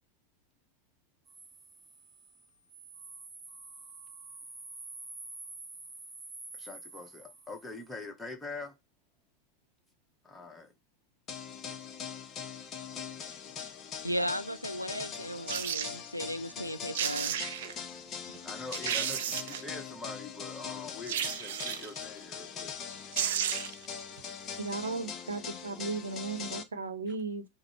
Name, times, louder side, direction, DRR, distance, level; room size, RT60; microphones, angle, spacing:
sound 1, 1.3-8.0, right 3 dB, 25° right, 1.6 m, -48 dB
voice 1, 6.5-8.7 10.2-10.7 18.4-22.7, left 3 dB, 5° left, 1.0 m, -44 dB
sound 2, 11.3-26.6, left 7 dB, 30° left, 0.7 m, -42 dB
voice 2, 14.0-17.4, equal, 90° left, 0.4 m, -35 dB
sound 3, 15.5-15.9 16.7-16.8 16.9-17.8 18.3-18.4 18.7-19.8 21.1-22.0 22.8-22.9 23.1-23.9 24.2-24.3, right 10 dB, 55° right, 0.4 m, -33 dB
voice 3, 24.6-27.5, right 4 dB, 70° right, 0.8 m, -36 dB
5.0 x 2.1 x 4.4 m
figure-of-eight pair, 90°, 0 cm